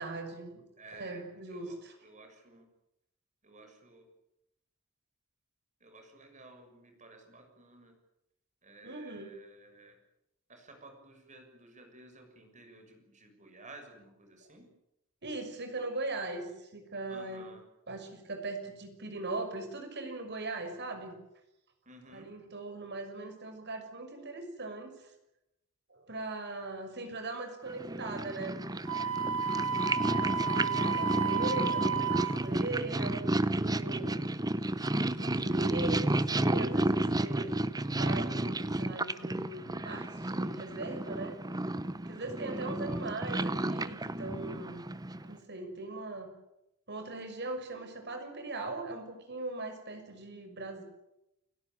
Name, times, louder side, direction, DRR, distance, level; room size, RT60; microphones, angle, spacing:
voice 1, 0.0-0.6 0.9-2.0 8.8-9.3 15.2-17.5 17.9-21.2 22.1-25.1 25.9-28.6 30.1-34.1 35.1-37.5 37.9-41.4 42.1-44.9 45.2-46.3 46.9-50.8, right 2 dB, 50° right, 6 dB, 6.1 m, -40 dB
voice 2, 0.8-2.7 3.4-4.1 5.8-7.9 8.6-10.0 10.5-14.7 17.1-17.6 21.9-22.3 29.4-29.8, right 2 dB, 35° right, 5 dB, 6.7 m, -54 dB
Purr, 27.7-45.3, right 1 dB, 20° right, 0.9 m, -32 dB
Wind instrument woodwind instrument, 28.9-32.4, right 6 dB, 75° right, 2.6 m, -32 dB
30.0 x 17.5 x 9.1 m, 0.87 s
head